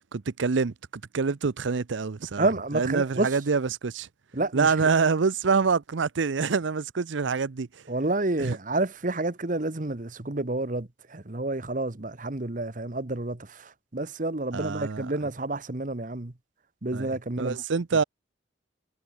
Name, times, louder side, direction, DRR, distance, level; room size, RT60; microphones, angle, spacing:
voice 1, 0.1-0.7 1.1-2.5 2.7-4.1 4.5-7.7 8.4-8.6 14.5-15.1 16.9-18.0, right 5 dB, 85° right, 0.6 m, -26 dB
voice 2, 2.4-3.3 4.3-4.7 7.9-16.3 16.8-17.6, right 2 dB, 45° right, 1.2 m, -29 dB
head